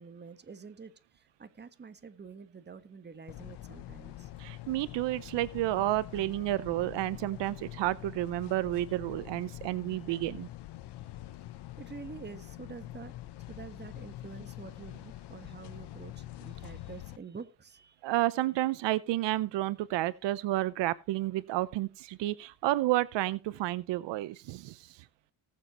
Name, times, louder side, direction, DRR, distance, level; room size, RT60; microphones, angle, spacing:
voice 1, 0.0-4.3 6.7-6.8 11.8-13.1 13.5-18.0, right 5 dB, 25° right, 1.3 m, -47 dB
sound 1, 3.3-17.2, left 15 dB, 70° left, 0.8 m, -45 dB
voice 2, 4.4-10.5 18.0-25.0, right 16 dB, 75° right, 0.7 m, -31 dB
19.0 x 7.5 x 3.0 m
cardioid pair, 100°, 43 cm